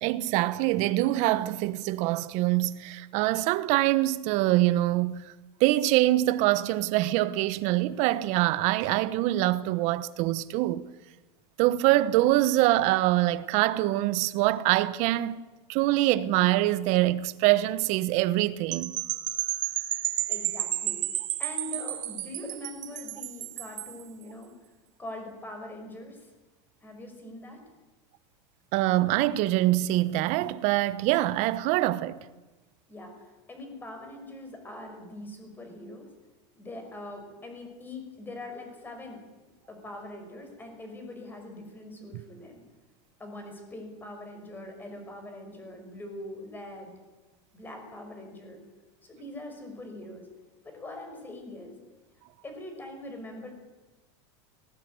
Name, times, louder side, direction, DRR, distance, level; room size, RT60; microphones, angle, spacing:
voice 1, 0.0-5.3 5.6-10.9 11.6-15.4 15.7-19.0 28.7-32.2, right 16 dB, 50° right, 1.1 m, -24 dB
sound 1, 18.7-24.0, right 14 dB, 80° right, 2.1 m, -32 dB
voice 2, 20.3-21.0 21.4-24.5 25.0-26.3 26.8-27.6 32.9-36.1 36.6-42.6 43.2-46.9 47.5-48.6 49.0-50.3 50.6-51.7 52.4-53.5, left 1 dB, 10° left, 5.8 m, -42 dB
19.0 x 19.0 x 9.5 m
supercardioid pair, 145°, 16 cm